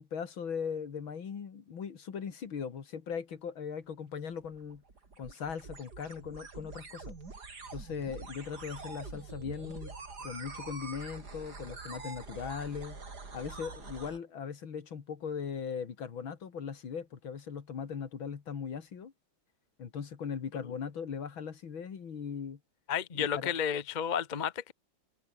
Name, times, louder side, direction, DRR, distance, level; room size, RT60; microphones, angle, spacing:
voice 1, 0.0-4.8 5.2-7.1 7.7-9.9 10.2-13.0 13.3-19.1 19.8-22.6 23.1-23.5, left 6 dB, 75° left, 2.9 m, -39 dB
sound 1, 4.4-14.2, right 4 dB, 50° right, 3.9 m, -45 dB
voice 2, 22.9-24.7, left 8 dB, 30° left, 1.0 m, -32 dB
omnidirectional pair, 2.2 m